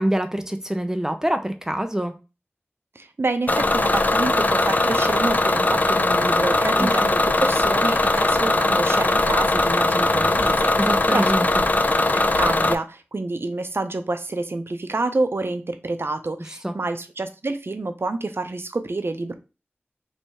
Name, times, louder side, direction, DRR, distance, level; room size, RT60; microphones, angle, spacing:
voice 1, 0.0-2.2 6.8-6.9 10.8-11.7 16.6-16.7, right 1 dB, 15° right, 0.5 m, -25 dB
voice 2, 3.0-10.7 11.1-11.3 12.1-19.3, right 2 dB, 65° right, 0.5 m, -28 dB
Bus / Engine, 3.5-12.8, left 2 dB, 40° left, 0.3 m, -20 dB
3.2 x 2.8 x 4.6 m
wide cardioid pair, 55°, 4 cm